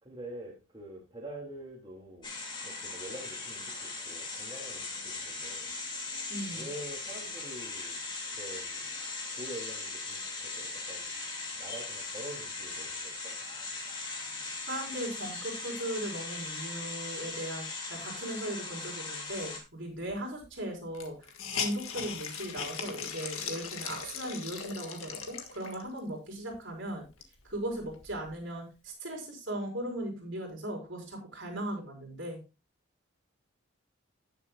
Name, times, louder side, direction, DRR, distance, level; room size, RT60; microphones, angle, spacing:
voice 1, 0.0-2.3 2.6-5.7 6.5-8.0 8.3-8.9 9.3-11.1 11.5-13.4, right 1 dB, 25° right, 2.4 m, -45 dB
sound 1, 2.2-19.6, left 3 dB, 20° left, 2.3 m, -39 dB
voice 2, 6.3-6.7 14.6-21.1 21.5-27.0 27.4-32.4, right 1 dB, 60° right, 4.6 m, -38 dB
Hiss, 20.1-20.2 20.4-20.5 20.9-26.0 26.5-26.6 27.0-28.4, left 7 dB, 80° left, 1.7 m, -39 dB
18.0 x 6.9 x 2.3 m
head